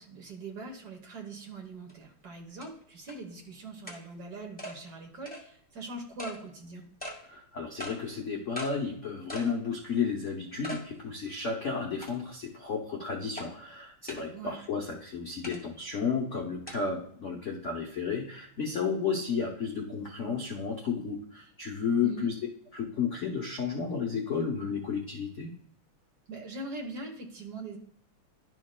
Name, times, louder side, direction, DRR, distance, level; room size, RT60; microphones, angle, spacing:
voice 1, 0.0-6.8 14.3-14.6 22.0-22.3 26.3-27.8, right 2 dB, 50° right, 1 dB, 1.5 m, -42 dB
sound 1, 1.9-2.0 2.6-2.7 3.1-3.2 3.9-4.0 4.6-4.8 5.3-5.4 6.2-6.4 7.0-7.2 7.8-8.0 8.6-8.7 9.3-9.5 10.0-10.1 10.6-10.8 11.3-11.4 12.0-12.4 13.4-13.5 14.1-14.2 15.4-15.6 16.7-16.8, equal, 5° left, 1.2 m, -40 dB
voice 2, 7.3-22.3 22.7-25.5, left 5 dB, 60° left, 0 dB, 0.7 m, -32 dB
11.5 x 6.2 x 2.2 m, 0.66 s
omnidirectional pair, 2.4 m